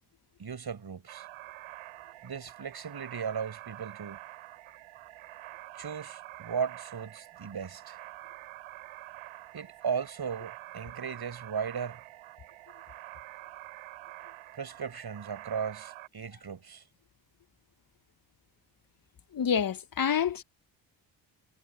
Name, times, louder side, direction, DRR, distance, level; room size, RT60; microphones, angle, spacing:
voice 1, 0.4-1.3 2.2-4.2 5.7-8.0 9.5-12.0 14.5-16.8, right 6 dB, 50° right, 6.5 m, -36 dB
sound 1, 1.1-16.1, right 17 dB, 85° right, 5.6 m, -47 dB
voice 2, 19.3-20.4, left 7 dB, 45° left, 1.3 m, -27 dB
hypercardioid pair, 45°, 49 cm